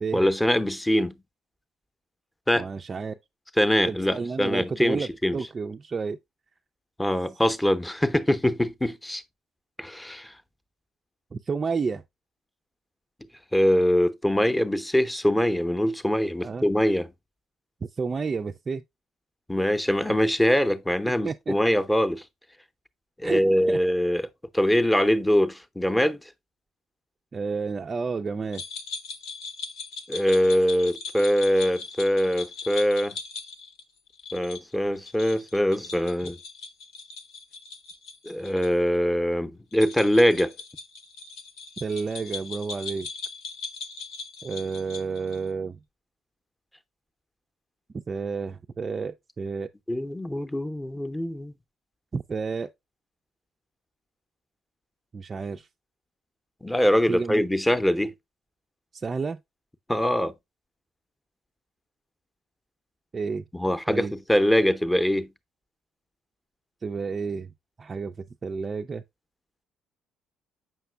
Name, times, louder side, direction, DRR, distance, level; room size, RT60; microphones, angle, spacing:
voice 1, 0.1-1.1 2.5-2.7 3.6-5.4 7.0-9.2 9.8-10.3 13.5-17.1 19.5-22.2 23.2-24.3 24.5-26.2 30.1-33.2 34.3-36.4 38.2-40.5 49.9-51.5 56.6-58.1 59.9-60.3 63.5-65.3, equal, 10° left, 0.7 m, -23 dB
voice 2, 2.6-3.2 3.9-6.2 11.3-12.0 16.4-16.7 18.0-18.8 21.2-21.6 23.2-23.4 23.7-23.8 27.3-28.6 41.8-43.1 44.4-45.8 47.9-49.7 52.1-52.7 55.1-55.7 57.1-57.4 58.9-59.4 63.1-63.4 63.9-64.1 66.8-67.5 67.8-68.1 68.4-69.0, right 5 dB, 35° right, 0.3 m, -30 dB
sound 1, 28.5-38.7 38.9-39.0 39.7-45.5, left 4 dB, 70° left, 0.7 m, -39 dB
7.4 x 5.8 x 2.2 m
hypercardioid pair, 50°, 0 cm